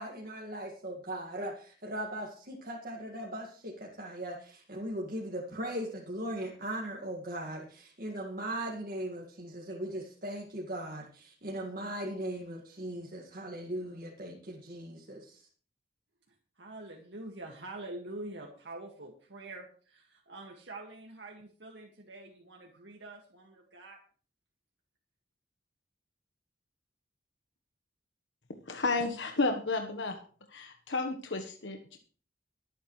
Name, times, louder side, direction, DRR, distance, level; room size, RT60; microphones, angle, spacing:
voice 1, 0.0-15.5, right 1 dB, 50° right, -2 dB, 2.1 m, -39 dB
voice 2, 16.6-24.0, right 2 dB, 80° right, 0 dB, 2.0 m, -45 dB
voice 3, 28.7-30.2 30.5-32.0, left 3 dB, 80° left, 4 dB, 1.3 m, -32 dB
23.0 x 9.2 x 3.2 m, 0.42 s
head